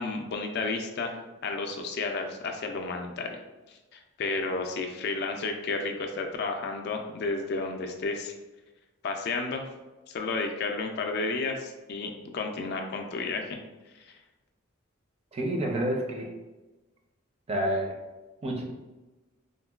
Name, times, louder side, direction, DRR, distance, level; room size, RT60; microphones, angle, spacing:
voice 1, 0.0-3.4 3.7-8.3 9.0-9.7 10.1-13.6, left 3 dB, 55° left, 4 dB, 0.3 m, -32 dB
voice 2, 15.3-16.3 17.5-18.0 18.4-18.6, right 1 dB, 30° right, 0 dB, 0.5 m, -28 dB
3.7 x 2.1 x 2.3 m, 1.1 s
head